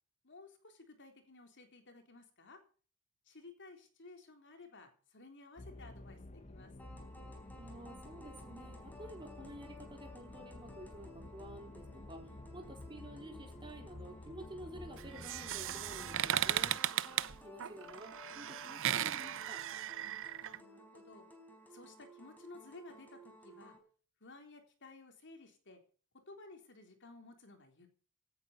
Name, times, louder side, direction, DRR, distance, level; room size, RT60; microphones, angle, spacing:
voice 1, 0.2-2.6 3.3-6.7 20.0-21.3 21.7-23.8 24.2-25.8 26.3-27.9, left 3 dB, 55° left, 5 dB, 3.7 m, -56 dB
sound 1, 5.6-16.8, left 2 dB, 30° left, 0.9 m, -51 dB
sound 2, 6.8-23.8, left 1 dB, 10° left, 4.2 m, -56 dB
voice 2, 7.6-16.8 17.4-19.6, right 1 dB, 20° right, 3 dB, 4.2 m, -51 dB
sound 3, 15.0-20.6, right 11 dB, 60° right, 0.7 m, -36 dB
17.0 x 9.4 x 6.8 m, 0.41 s
head